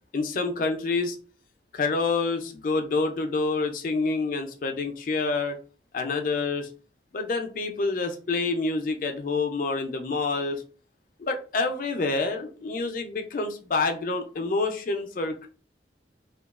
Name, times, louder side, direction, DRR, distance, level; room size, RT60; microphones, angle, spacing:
voice 1, 0.1-1.2 1.7-5.6 5.9-6.7 7.1-10.6 11.2-15.5, left 3 dB, 45° left, 5 dB, 0.4 m, -27 dB
2.9 x 2.2 x 2.3 m, 0.38 s
head